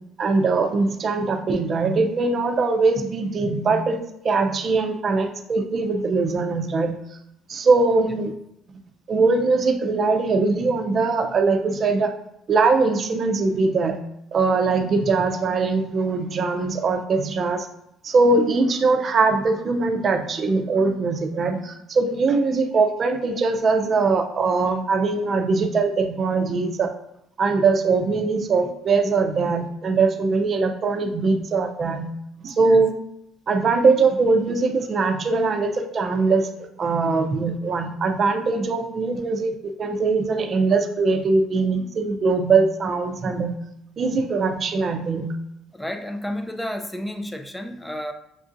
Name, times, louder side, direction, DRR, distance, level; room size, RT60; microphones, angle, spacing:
voice 1, 0.2-4.0 4.2-7.0 7.5-8.3 9.1-12.1 12.5-14.0 14.3-17.7 18.0-26.9 27.4-32.1 32.4-33.0 33.5-43.6 44.0-45.3, right 4 dB, 45° right, 5 dB, 0.6 m, -21 dB
voice 2, 45.7-48.1, left 1 dB, 5° left, 5 dB, 0.5 m, -31 dB
6.8 x 2.5 x 2.6 m, 0.79 s
cardioid pair, 90°, 0 cm